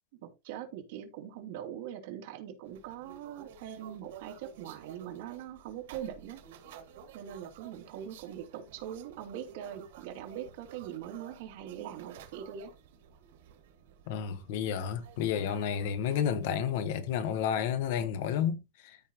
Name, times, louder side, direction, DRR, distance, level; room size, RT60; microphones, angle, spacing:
voice 1, 0.2-6.4 7.1-12.7, right 10 dB, 65° right, 2.8 m, -42 dB
sound 1, 2.6-17.0, right 8 dB, 85° right, 2.6 m, -53 dB
voice 2, 14.1-19.0, left 8 dB, 60° left, 1.1 m, -31 dB
13.5 x 5.2 x 3.1 m
supercardioid pair, 175°, 0 cm